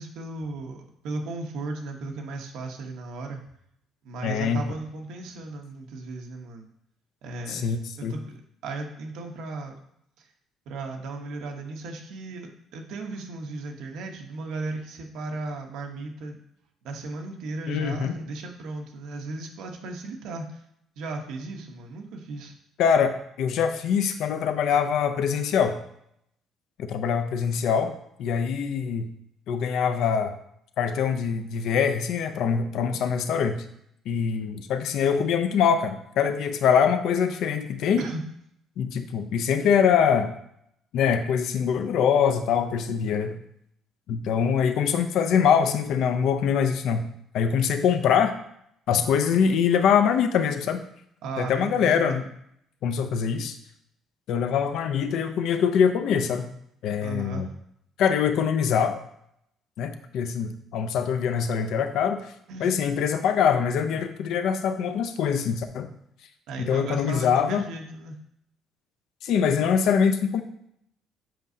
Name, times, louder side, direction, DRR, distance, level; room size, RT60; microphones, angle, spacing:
voice 1, 0.0-3.4 4.0-6.6 7.2-8.2 8.6-9.8 10.2-10.3 10.7-16.4 16.8-20.6 21.0-22.5 38.0-38.2 51.2-52.2 57.0-57.5 62.5-62.7 66.5-68.2, right 3 dB, 75° right, 2 dB, 1.0 m, -36 dB
voice 2, 4.2-4.6 7.5-8.1 17.7-18.2 22.8-25.8 26.8-27.9 28.2-29.1 29.5-30.3 30.8-33.6 34.1-38.0 38.8-40.3 40.9-43.4 44.1-47.1 47.3-48.3 48.9-50.8 51.4-52.2 52.8-53.5 54.3-56.5 56.8-57.5 58.0-59.0 59.8-62.2 62.6-65.9 66.6-67.6 69.2-70.4, left 7 dB, 65° left, 8 dB, 0.6 m, -23 dB
7.6 x 5.1 x 2.7 m, 0.74 s
cardioid pair, 165°, 0 cm